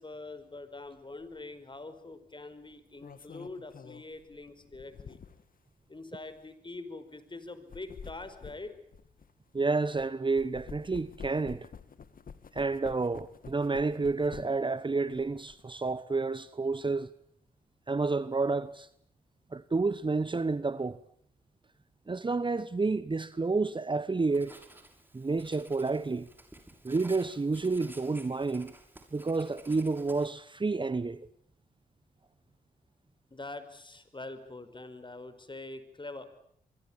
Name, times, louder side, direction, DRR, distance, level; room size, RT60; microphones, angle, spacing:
voice 1, 0.0-5.2 5.9-8.7 33.3-36.3, left 2 dB, 25° left, 5.3 m, -44 dB
sound 1, 1.2-1.4 2.7-5.5 6.2-6.4 7.5-10.1 10.4-14.7 15.1-15.9, left 6 dB, 55° left, 2.0 m, -49 dB
voice 2, 9.5-11.7 12.5-17.1 17.9-18.9 19.5-21.0 22.1-24.6 25.1-26.3 26.8-28.7 29.1-31.3, right 3 dB, 25° right, 1.1 m, -30 dB
Writing, 24.3-30.3, right 1 dB, 10° right, 6.8 m, -53 dB
25.0 x 24.0 x 8.9 m
hypercardioid pair, 40°, 18 cm